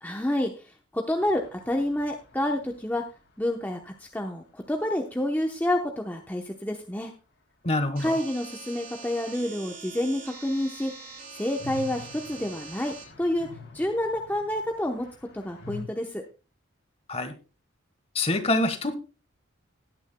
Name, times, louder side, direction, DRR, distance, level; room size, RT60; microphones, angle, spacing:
voice 1, 0.0-3.0 3.4-7.1 8.0-10.9 11.3-13.5 13.7-15.1 15.3-16.2, left 1 dB, 10° left, 2 dB, 0.8 m, -29 dB
sound 1, 1.2-5.0 5.2-5.3 5.5-5.6 10.6-15.8, left 5 dB, 60° left, 3.1 m, -47 dB
voice 2, 7.6-8.1 17.1-17.3 18.1-18.9, left 2 dB, 30° left, 11 dB, 1.3 m, -25 dB
sound 2, 8.0-13.0, right 5 dB, 45° right, 6.2 m, -44 dB
18.0 x 9.6 x 2.2 m, 0.31 s
head